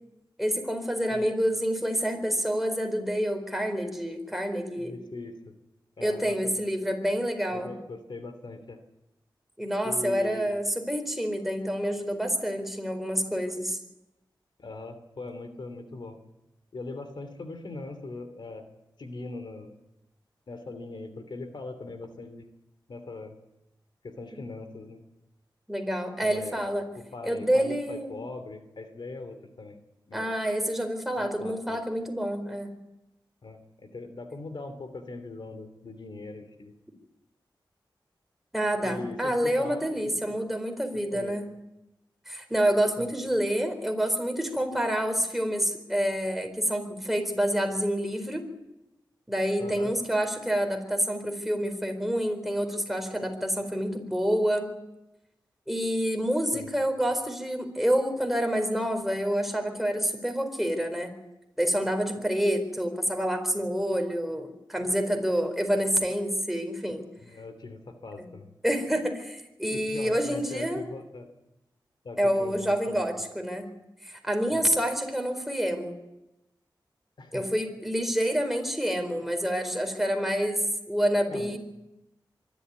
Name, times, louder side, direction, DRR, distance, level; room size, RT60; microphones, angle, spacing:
voice 1, 0.4-5.0 6.0-7.7 9.6-13.8 25.7-26.9 27.2-28.2 30.1-32.7 38.5-41.5 42.3-48.4 49.3-54.7 55.7-61.1 61.6-67.0 68.2-68.3 68.6-70.9 72.2-73.7 74.0-75.9 77.3-80.6 80.9-81.6, equal, 5° right, 5 dB, 4.3 m, -28 dB
voice 2, 4.8-5.6 6.0-6.5 7.5-8.8 9.8-10.6 14.6-16.2 16.7-18.6 19.0-19.7 20.5-22.4 22.9-23.4 24.0-25.0 26.2-29.8 30.1-30.3 31.1-31.8 33.4-36.7 38.8-40.2 41.1-41.4 43.0-43.1 49.6-49.9 56.5-56.7 67.2-68.5 69.7-71.3 72.0-73.0 74.5-74.6 77.2-77.4 81.3-81.6, left 3 dB, 70° left, 8 dB, 3.0 m, -40 dB
24.5 x 12.5 x 9.5 m, 0.92 s
wide cardioid pair, 65°, 8 cm